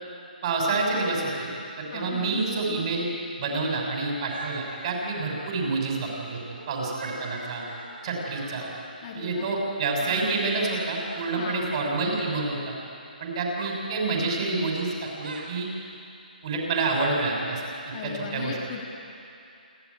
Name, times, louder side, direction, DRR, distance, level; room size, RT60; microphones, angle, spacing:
voice 1, 0.4-1.5 1.8-3.1 3.4-6.4 6.7-7.6 8.0-8.7 9.1-12.7 13.2-15.7 16.4-17.6 18.0-18.6, right 3 dB, 40° right, 0 dB, 6.2 m, -28 dB
voice 2, 1.9-2.4 9.0-9.5 11.3-11.7 17.9-18.8, left 7 dB, 35° left, 0 dB, 2.5 m, -37 dB
sound 1, 4.3-5.9 6.5-8.9 10.1-11.5 12.1-12.5 13.6-13.8 15.0-15.4 16.7-17.1, right 3 dB, 75° right, 5.0 m, -42 dB
28.0 x 12.0 x 9.6 m, 2.6 s
hypercardioid pair, 155°, 5 cm